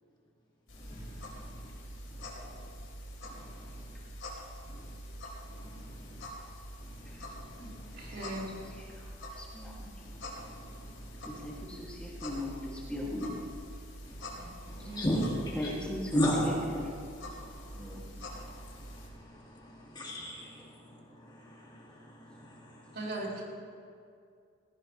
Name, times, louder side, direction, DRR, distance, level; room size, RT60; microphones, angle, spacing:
sound 1, 0.7-19.1, equal, 80° left, 3.8 m, -45 dB
voice 1, 0.9-1.7 2.1-2.2 3.2-3.9 4.7-4.9 5.5-6.2 6.8-8.2 10.1-11.6 14.0-15.7 16.1-16.5 17.2-18.0 18.3-20.8 21.1-23.0, equal, 20° left, -3 dB, 2.2 m, -37 dB
voice 2, 8.0-8.5 14.3-15.2 22.9-23.4, right 1 dB, 55° right, -5 dB, 3.9 m, -40 dB
voice 3, 9.4-9.9 11.4-13.3 14.9-15.0 15.6-16.8 17.7-18.3, left 1 dB, 5° left, -5 dB, 2.4 m, -39 dB
20.0 x 17.0 x 3.3 m, 2.3 s
head